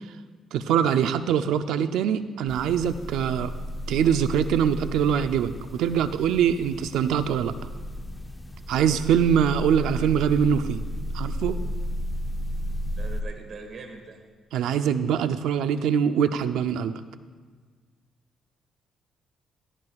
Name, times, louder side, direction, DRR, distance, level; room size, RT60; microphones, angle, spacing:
voice 1, 0.5-3.5 3.9-7.5 8.7-10.8 11.1-11.6 14.5-17.0, right 8 dB, 85° right, 10 dB, 0.5 m, -23 dB
sound 1, 2.5-13.2, equal, 15° left, 0.7 m, -33 dB
voice 2, 13.0-14.2, right 4 dB, 55° right, 3 dB, 2.0 m, -41 dB
17.0 x 14.0 x 2.4 m, 1.5 s
cardioid pair, 90°, 0 cm